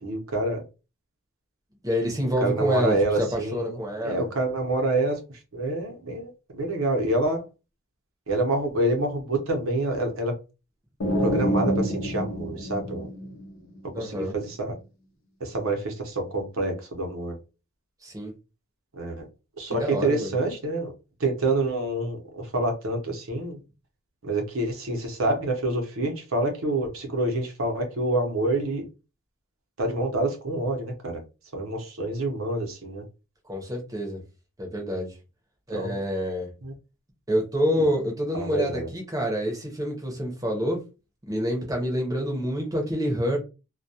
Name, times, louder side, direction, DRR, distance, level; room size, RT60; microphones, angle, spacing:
voice 1, 0.0-0.6 2.4-5.2 5.5-7.4 8.3-10.4 11.2-13.1 14.0-14.8 15.4-17.4 19.0-19.3 19.6-20.9 21.2-23.6 24.2-28.9 29.8-31.2 31.5-33.0 35.7-36.0 36.6-36.7 37.7-37.8 38.3-38.9, right 2 dB, 75° right, 0.7 m, -27 dB
voice 2, 1.8-4.3 13.9-14.3 18.0-18.3 19.7-20.3 33.4-34.2 34.6-35.1 35.7-36.5 37.3-40.8 41.3-43.4, equal, 15° right, 0.7 m, -27 dB
sound 1, 11.0-13.8, equal, 70° left, 0.6 m, -27 dB
2.2 x 2.2 x 2.7 m
head